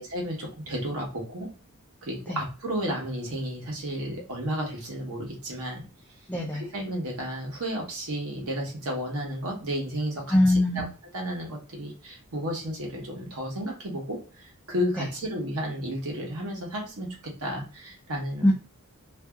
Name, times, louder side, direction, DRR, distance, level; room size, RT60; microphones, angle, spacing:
voice 1, 0.1-1.5 2.0-5.8 6.7-10.4 10.7-10.8 11.1-17.1 17.4-18.5, equal, 75° right, -1 dB, 1.1 m, -32 dB
voice 2, 6.3-6.6 10.3-10.9 15.0-15.1 18.4-18.5, left 1 dB, 5° left, -2 dB, 0.4 m, -22 dB
2.7 x 2.6 x 2.3 m, 0.36 s
head